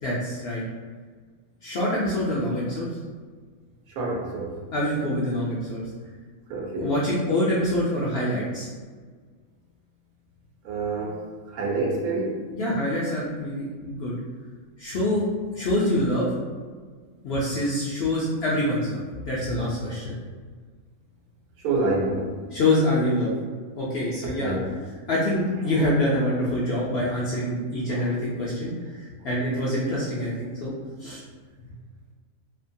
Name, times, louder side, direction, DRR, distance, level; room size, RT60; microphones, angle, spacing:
voice 1, 0.0-0.6 1.6-2.9 4.7-5.9 6.8-8.7 12.5-14.2 14.8-15.2 15.5-16.3 17.2-20.2 22.5-23.3 23.8-24.5 25.1-28.7 29.0-30.7 31.0-31.2, left 1 dB, 70° left, -6 dB, 0.6 m, -25 dB
voice 2, 3.9-4.6 6.5-6.9 10.6-12.4 21.6-22.4 24.4-24.7 27.9-28.1, right 2 dB, 85° right, -1 dB, 1.1 m, -28 dB
2.7 x 2.2 x 2.5 m, 1.6 s
omnidirectional pair, 1.5 m